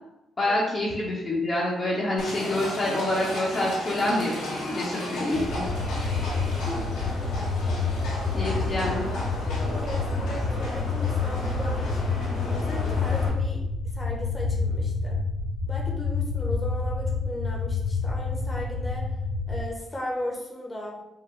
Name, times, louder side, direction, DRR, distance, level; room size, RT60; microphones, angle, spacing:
voice 1, 0.4-5.7 8.3-9.1, left 1 dB, 30° left, -5 dB, 1.0 m, -27 dB
Livestock farm animals working animals, 2.2-13.3, left 1 dB, 85° left, 1.4 m, -34 dB
sound 1, 5.3-19.6, left 4 dB, 55° left, 0.8 m, -28 dB
voice 2, 6.4-6.9 8.3-8.5 9.6-13.6 13.9-15.2 15.7-19.1 19.5-21.0, left 1 dB, 15° left, -2 dB, 1.1 m, -36 dB
4.8 x 2.1 x 3.6 m, 0.89 s
cardioid pair, 90°, 0 cm